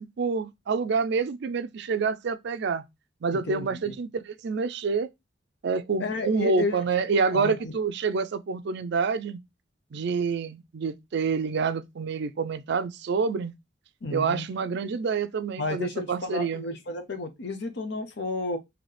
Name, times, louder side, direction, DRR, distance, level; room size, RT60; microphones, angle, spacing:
voice 1, 0.2-2.8 3.2-5.1 5.6-9.4 9.9-13.5 14.1-16.6, right 5 dB, 60° right, 0.4 m, -27 dB
voice 2, 3.3-3.9 6.0-6.8 7.3-7.7 14.0-14.5 15.6-18.6, left 2 dB, 65° left, 0.8 m, -32 dB
4.0 x 2.8 x 3.2 m
head